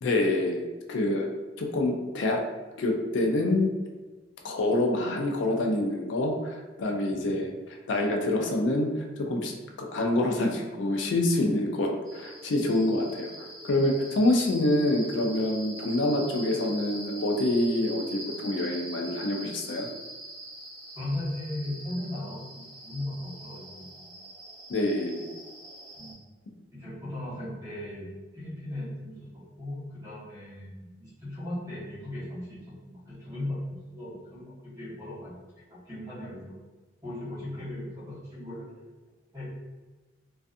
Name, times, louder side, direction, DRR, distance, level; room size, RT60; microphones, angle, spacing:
voice 1, 0.0-1.3 1.6-2.4 2.8-3.7 4.4-7.5 7.9-9.5 9.8-19.9 24.7-25.3, left 1 dB, 75° left, 2 dB, 0.4 m, -26 dB
sound 1, 12.1-26.1, right 1 dB, 5° left, 0.7 m, -43 dB
voice 2, 21.0-24.1 26.0-26.2 26.7-28.1 28.3-29.2 29.6-35.3 35.9-36.6 37.0-38.7 39.3-39.5, left 1 dB, 20° right, -9 dB, 1.0 m, -37 dB
2.5 x 2.3 x 2.5 m, 1.3 s
head